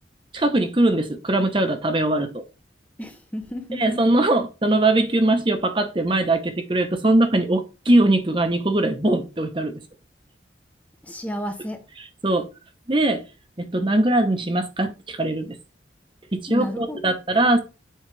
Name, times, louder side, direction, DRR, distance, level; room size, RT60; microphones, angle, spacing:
voice 1, 0.3-2.4 3.8-9.7 12.0-12.4 12.9-13.2 13.6-15.6 16.3-17.6, right 2 dB, 25° right, 0.8 m, -21 dB
voice 2, 3.0-4.2 11.0-11.8 16.5-17.2, equal, 10° left, 0.6 m, -32 dB
7.4 x 5.0 x 3.2 m
head